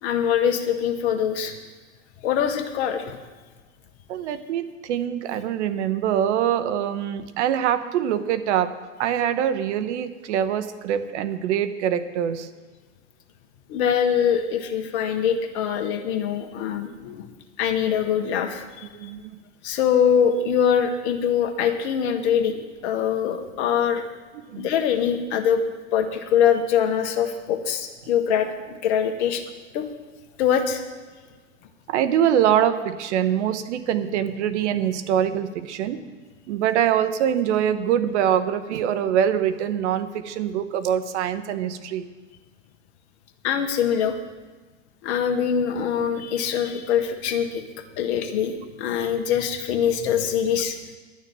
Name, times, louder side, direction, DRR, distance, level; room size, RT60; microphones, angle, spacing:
voice 1, 0.0-1.5 2.2-3.2 13.7-17.3 17.6-19.1 19.6-24.0 24.5-25.6 25.9-29.4 29.7-29.9 30.4-30.8 43.4-44.2 45.0-47.6 48.0-50.8, left 8 dB, 55° left, 6 dB, 1.6 m, -23 dB
voice 2, 4.1-8.7 9.0-12.5 18.9-19.4 24.5-24.7 31.9-36.0 36.5-42.1, right 9 dB, 60° right, 11 dB, 1.1 m, -24 dB
11.5 x 6.6 x 9.2 m, 1.4 s
hypercardioid pair, 95°, 38 cm